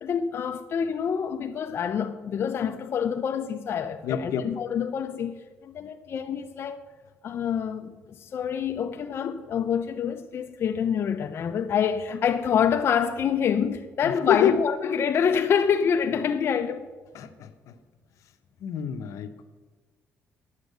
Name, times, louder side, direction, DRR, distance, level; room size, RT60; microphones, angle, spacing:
voice 1, 0.0-5.3 5.6-6.8 7.2-7.9 8.2-16.9, left 7 dB, 50° left, 0.6 m, -26 dB
voice 2, 4.0-4.5 14.0-14.6 17.1-17.8 18.6-19.4, left 9 dB, 80° left, 0.9 m, -27 dB
9.8 x 7.3 x 6.7 m
cardioid pair, 130°, 5 cm